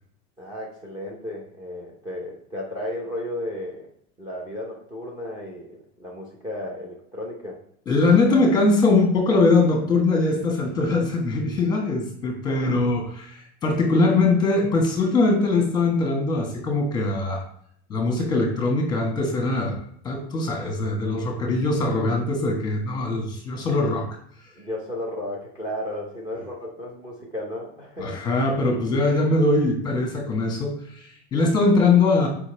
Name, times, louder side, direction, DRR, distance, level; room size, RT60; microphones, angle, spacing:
voice 1, 0.4-3.9 4.2-7.6 12.5-12.6 24.6-28.2, left 1 dB, 15° right, -2 dB, 0.8 m, -34 dB
voice 2, 7.9-17.4 17.9-24.1 28.0-32.3, left 3 dB, 15° left, 1 dB, 1.4 m, -21 dB
6.9 x 5.1 x 3.4 m, 0.68 s
supercardioid pair, 175°, 31 cm